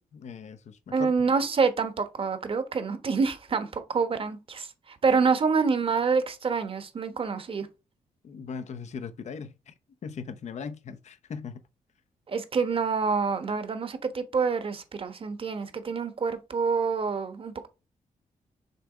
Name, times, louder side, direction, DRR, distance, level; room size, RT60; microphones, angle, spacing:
voice 1, 0.0-1.1 8.2-9.7 10.0-11.6, left 6 dB, 60° left, 0.8 m, -39 dB
voice 2, 0.9-7.7 12.3-17.7, right 5 dB, 45° right, 1.1 m, -27 dB
6.7 x 3.4 x 4.9 m
cardioid pair, 110°, 13 cm